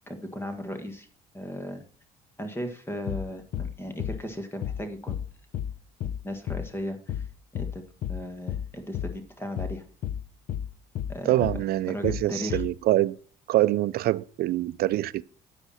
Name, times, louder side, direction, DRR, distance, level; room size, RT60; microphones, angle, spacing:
voice 1, 0.1-1.1 1.3-1.8 2.4-5.2 6.2-7.2 7.5-9.8 11.1-11.5 11.9-12.6, equal, 15° left, 1.7 m, -36 dB
sound 1, 3.1-3.3 3.5-3.7 4.0-4.2 4.6-4.8 5.1-5.3 5.5-5.7 6.0-6.2 6.5-6.7 7.1-7.3 7.6-7.8 8.0-8.2 8.5-8.7 8.9-9.1 9.6-9.8 10.0-10.2 10.5-10.7 11.0-11.2 11.4-11.6 12.0-12.2 12.5-12.7, left 10 dB, 60° left, 0.8 m, -32 dB
voice 2, 11.3-13.2 13.5-15.2, right 15 dB, 65° right, 0.5 m, -25 dB
10.0 x 9.2 x 4.3 m
cardioid pair, 110°, 17 cm